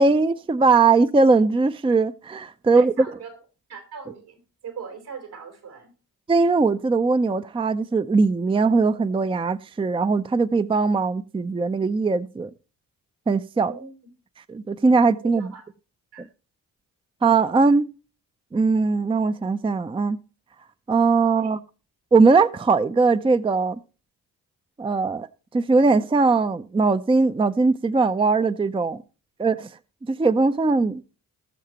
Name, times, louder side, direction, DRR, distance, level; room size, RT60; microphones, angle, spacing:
voice 1, 0.0-2.9 6.3-12.5 13.3-13.7 14.5-15.5 17.2-17.9 18.5-20.2 20.9-21.6 22.1-23.8 24.8-25.3 25.5-29.0 29.4-29.7 30.1-31.0, right 4 dB, 15° right, 0.5 m, -20 dB
voice 2, 2.7-3.4 3.7-5.9 13.5-13.9 15.2-15.6 16.1-16.3 21.3-21.5, right 6 dB, 75° right, 3.9 m, -40 dB
19.5 x 6.5 x 2.9 m
supercardioid pair, 55°, 39 cm